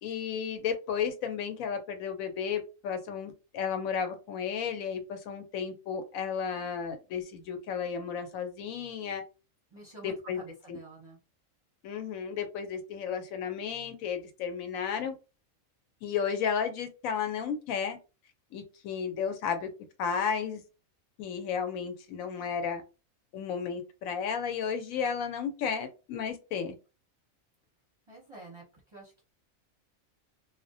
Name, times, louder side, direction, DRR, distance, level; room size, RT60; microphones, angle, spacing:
voice 1, 0.0-9.2 10.0-10.4 10.7-10.8 11.8-15.1 16.0-18.0 18.5-19.7 20.0-20.6 21.2-22.8 23.3-26.7, left 7 dB, 80° left, 1.0 m, -33 dB
voice 2, 9.7-11.2 28.1-29.2, right 2 dB, 30° right, 0.6 m, -49 dB
2.3 x 2.1 x 2.6 m
omnidirectional pair, 1.4 m